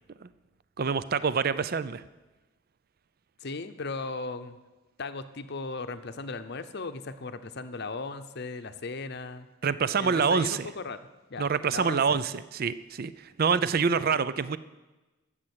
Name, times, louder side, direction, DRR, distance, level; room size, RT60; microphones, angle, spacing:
voice 1, 0.8-2.0 9.6-10.7 11.4-14.6, right 6 dB, 45° right, 15 dB, 0.4 m, -26 dB
voice 2, 3.4-4.6 5.0-9.5 10.0-11.0 11.3-12.2, left 3 dB, 50° left, 10 dB, 0.8 m, -37 dB
13.0 x 7.5 x 8.2 m, 1.1 s
head